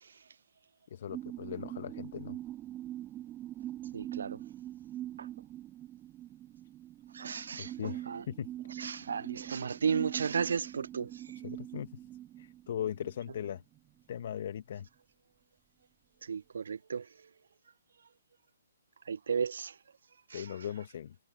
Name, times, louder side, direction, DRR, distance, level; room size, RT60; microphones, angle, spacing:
voice 1, 0.9-2.4 7.6-8.5 11.3-11.9 12.4-13.6 14.1-14.9 20.3-21.1, left 9 dB, 55° left, 1.4 m, -39 dB
sound 1, 1.1-14.1 14.5-14.6, right 13 dB, 20° right, 1.6 m, -44 dB
voice 2, 3.9-4.4 7.1-7.7 8.1-8.2 8.8-11.1 16.3-17.1 19.1-19.7 20.3-20.4, right 6 dB, 70° right, 0.3 m, -33 dB
hypercardioid pair, 140°, 0 cm